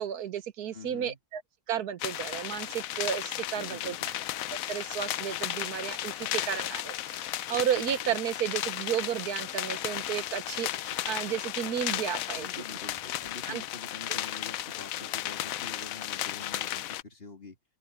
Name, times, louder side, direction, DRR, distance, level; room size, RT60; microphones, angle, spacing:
voice 1, 0.0-1.4 1.7-4.0 4.7-12.5 13.5-13.6, right 9 dB, 90° right, 1.6 m, -33 dB
voice 2, 0.7-1.2 3.6-4.2 12.4-17.6, left 3 dB, 40° left, 2.9 m, -46 dB
sound 1, 2.0-17.0, left 13 dB, 70° left, 1.0 m, -34 dB
sound 2, 5.0-14.0, right 1 dB, 30° right, 7.0 m, -60 dB
open air
omnidirectional pair, 1.6 m